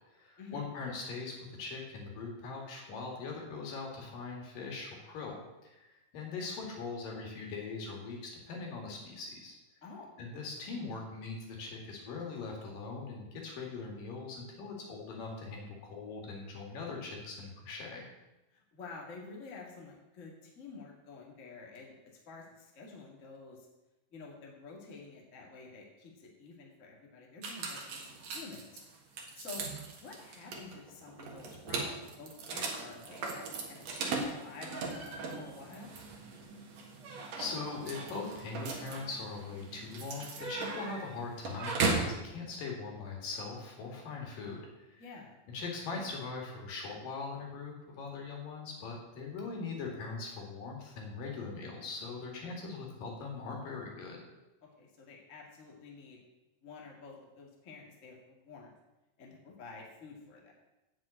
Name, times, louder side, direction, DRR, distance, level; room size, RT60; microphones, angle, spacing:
voice 1, 0.1-9.6 10.2-18.0 37.4-45.0 45.5-54.2, left 4 dB, 70° left, 0 dB, 3.8 m, -41 dB
voice 2, 18.5-21.9 22.2-23.7 24.1-28.8 29.3-29.6 30.0-35.9 45.0-45.4 54.8-56.2 56.6-58.7 59.2-60.5, left 4 dB, 30° left, -2 dB, 1.7 m, -49 dB
sound 1, 27.4-42.2, right 3 dB, 55° right, 2.4 m, -38 dB
7.8 x 7.7 x 8.7 m, 1.0 s
omnidirectional pair, 4.2 m